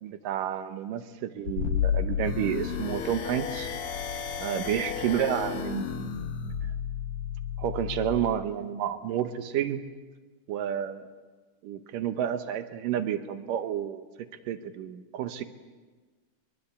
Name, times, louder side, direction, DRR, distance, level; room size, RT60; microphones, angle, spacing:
voice 1, 0.0-3.7 4.4-6.1 6.4-6.7 7.6-9.8 10.5-11.1 11.6-14.1 14.5-15.4, right 10 dB, 70° right, 10 dB, 2.4 m, -30 dB
sound 1, 1.5-7.0, left 9 dB, 70° left, 2.4 m, -33 dB
sound 2, 2.2-8.2, left 7 dB, 90° left, 1.1 m, -34 dB
22.5 x 22.5 x 8.4 m, 1.3 s
omnidirectional pair, 4.5 m